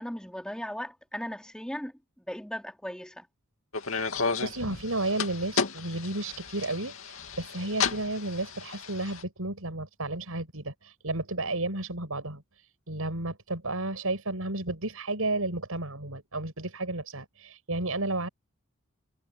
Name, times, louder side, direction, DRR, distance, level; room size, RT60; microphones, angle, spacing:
voice 1, 0.0-3.3, equal, 5° left, 3.4 m, -37 dB
sound 1, 3.7-9.2, left 5 dB, 70° left, 2.7 m, -33 dB
voice 2, 4.4-18.3, right 2 dB, 80° right, 6.1 m, -32 dB
head